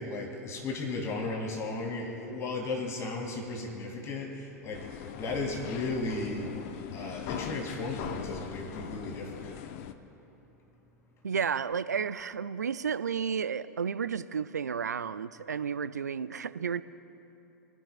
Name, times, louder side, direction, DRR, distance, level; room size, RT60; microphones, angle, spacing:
voice 1, 0.0-4.9 5.1-6.5 6.9-9.6, left 3 dB, 30° left, 0 dB, 2.8 m, -35 dB
sound 1, 4.7-9.9, left 9 dB, 50° left, 0.7 m, -40 dB
voice 2, 11.2-16.8, right 6 dB, 80° right, 15 dB, 0.4 m, -32 dB
27.5 x 10.5 x 2.4 m, 2.9 s
figure-of-eight pair, 90°, 9 cm